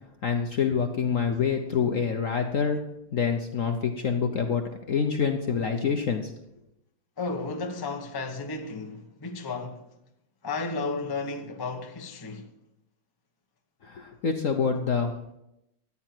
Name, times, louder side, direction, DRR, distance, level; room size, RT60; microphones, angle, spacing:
voice 1, 0.2-2.8 3.1-6.3 13.8-15.3, left 6 dB, 60° left, 0.8 m, -26 dB
voice 2, 7.2-9.9 10.4-12.5, left 3 dB, 30° left, 0.4 m, -33 dB
14.0 x 9.8 x 4.5 m
omnidirectional pair, 2.4 m